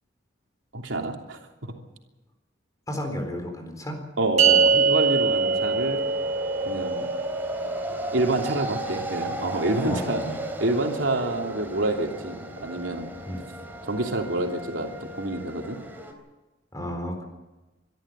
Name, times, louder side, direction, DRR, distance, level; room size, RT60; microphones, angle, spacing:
voice 1, 0.7-1.7 4.2-6.0 6.6-7.1 8.0-10.2 10.6-13.1 13.8-15.8, right 2 dB, 90° right, 2 dB, 3.1 m, -27 dB
voice 2, 2.9-4.1 9.8-10.4 13.3-13.5 16.7-17.3, equal, 20° left, 5 dB, 4.1 m, -32 dB
sound 1, 4.4-10.9, right 4 dB, 35° right, 2.2 m, -25 dB
sound 2, 5.0-16.1, right 1 dB, 10° right, 3.5 m, -36 dB
24.0 x 13.0 x 8.9 m, 1.1 s
head